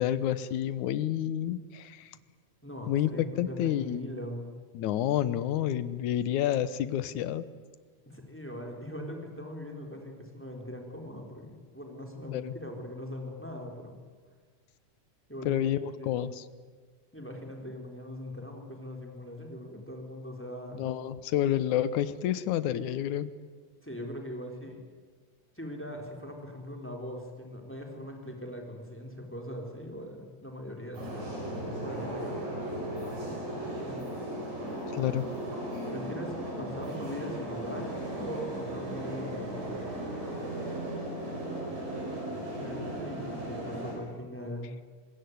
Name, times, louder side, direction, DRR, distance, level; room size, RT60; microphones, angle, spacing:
voice 1, 0.0-2.1 2.9-3.1 3.4-4.1 4.7-7.5 12.3-12.5 15.5-16.5 20.8-23.3 34.9-35.3, left 11 dB, 75° left, 15 dB, 2.4 m, -29 dB
voice 2, 2.6-4.5 8.1-13.9 15.3-15.6 16.0-16.2 17.1-20.8 23.8-24.8 25.5-31.4 31.8-34.0 35.9-39.8 42.6-44.7, left 1 dB, 5° left, 2 dB, 3.8 m, -41 dB
sound 1, 30.9-43.9, right 1 dB, 65° right, 8.2 m, -36 dB
25.0 x 21.0 x 9.4 m, 1.5 s
omnidirectional pair, 3.5 m